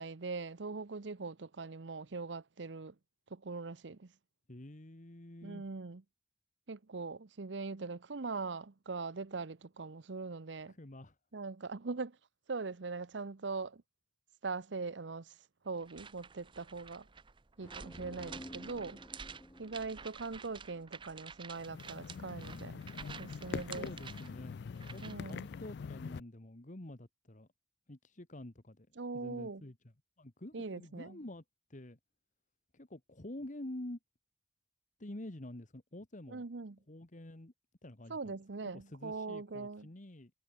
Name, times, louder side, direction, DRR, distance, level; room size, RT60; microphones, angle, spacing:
voice 1, 0.0-2.9 3.3-4.1 5.4-6.0 6.7-10.7 11.3-12.2 12.5-13.8 14.4-15.3 15.6-17.1 17.6-19.0 19.6-22.8 23.2-23.9 25.0-25.5 29.0-29.6 30.5-31.2 36.3-36.8 38.1-39.9, right 4 dB, 75° right, 0.8 m, -41 dB
voice 2, 4.5-5.6 10.7-11.1 23.8-24.6 24.9-27.5 27.9-28.9 29.1-29.7 30.2-31.4 31.7-32.0 32.7-34.0 35.0-36.4 36.9-37.5 37.8-38.4 38.7-40.3, left 1 dB, 45° left, 1.7 m, -48 dB
sound 1, 15.8-25.3, right 6 dB, 25° right, 0.7 m, -50 dB
sound 2, 17.6-21.3, equal, 15° left, 3.2 m, -52 dB
sound 3, 21.6-26.2, left 5 dB, 65° left, 0.4 m, -44 dB
head